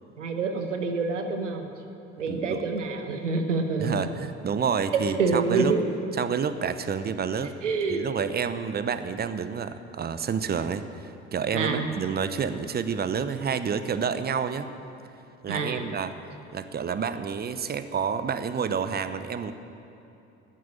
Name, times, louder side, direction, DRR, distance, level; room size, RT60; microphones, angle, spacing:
voice 1, 0.2-1.7 2.2-4.1 5.2-5.9 7.6-8.1 11.5-11.9 15.5-15.9, right 4 dB, 80° right, 5 dB, 1.0 m, -27 dB
voice 2, 2.3-2.6 3.8-5.7 6.2-7.5 7.9-14.7 15.4-16.1 16.5-19.5, right 6 dB, 25° right, 12 dB, 0.8 m, -29 dB
12.5 x 9.6 x 8.3 m, 3.0 s
figure-of-eight pair, 55°, 36 cm